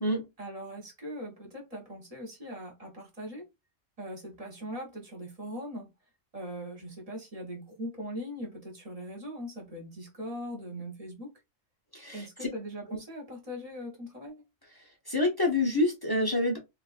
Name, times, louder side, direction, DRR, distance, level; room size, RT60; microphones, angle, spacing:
voice 1, 0.4-3.5 4.0-5.9 6.3-11.3 12.1-14.4, equal, 35° right, 0.9 m, -40 dB
voice 2, 11.9-12.3 12.9-13.0 15.1-16.6, left 2 dB, 25° left, 0.5 m, -27 dB
3.5 x 2.4 x 2.4 m
omnidirectional pair, 1.3 m